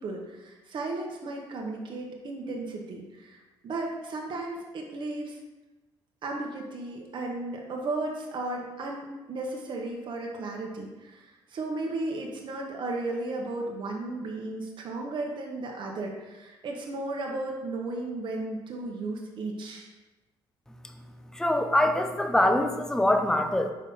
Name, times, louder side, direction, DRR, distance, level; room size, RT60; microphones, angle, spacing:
voice 1, 0.0-5.3 6.2-11.2 11.5-19.9, right 2 dB, 50° right, 0 dB, 1.1 m, -34 dB
voice 2, 21.3-23.7, left 1 dB, 5° left, 5 dB, 0.6 m, -24 dB
4.8 x 4.1 x 5.5 m, 1.1 s
cardioid pair, 105°, 10 cm